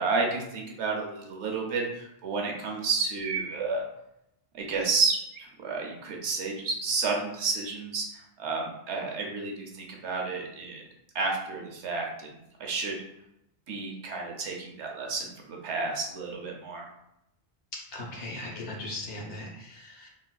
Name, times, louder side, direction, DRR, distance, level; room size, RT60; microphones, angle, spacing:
voice 1, 0.0-3.8 4.5-10.8 11.1-13.0 13.7-16.8, right 4 dB, 85° right, 0 dB, 1.0 m, -31 dB
voice 2, 17.9-20.1, left 2 dB, 85° left, -3 dB, 1.2 m, -38 dB
3.8 x 2.4 x 2.2 m, 0.82 s
omnidirectional pair, 1.1 m